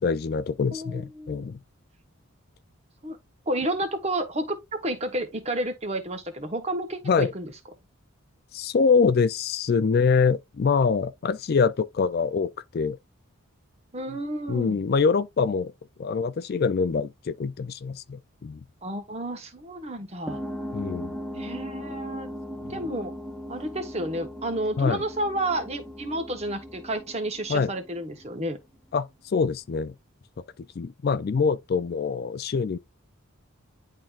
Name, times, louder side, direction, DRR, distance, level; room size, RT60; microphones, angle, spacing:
voice 1, 0.0-1.6 7.1-7.3 8.5-13.0 14.5-15.7 16.0-18.6 20.7-21.1 22.7-22.8 24.8-25.0 27.5-27.7 28.9-29.9 30.8-32.8, left 5 dB, 45° left, 0.3 m, -24 dB
voice 2, 0.7-1.5 3.0-3.2 3.5-7.5 13.9-14.8 18.8-20.4 21.3-22.3 22.7-23.1 23.5-28.6, right 1 dB, 30° right, 1.1 m, -31 dB
sound 1, 20.3-28.4, equal, ahead, 0.7 m, -38 dB
10.5 x 3.7 x 2.4 m
head